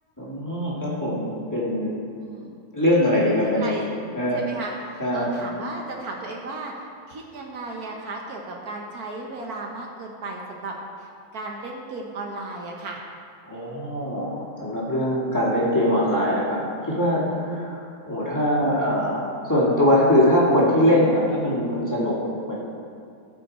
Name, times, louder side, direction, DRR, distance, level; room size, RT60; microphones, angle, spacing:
voice 1, 0.2-2.0 2.7-3.8 4.2-4.4 5.0-5.3 13.5-22.2 22.5-22.6, left 1 dB, 10° left, -8 dB, 2.2 m, -22 dB
voice 2, 2.2-2.5 3.4-3.9 4.3-13.0, right 2 dB, 70° right, 0 dB, 1.4 m, -35 dB
16.5 x 5.6 x 4.3 m, 2.5 s
omnidirectional pair, 1.7 m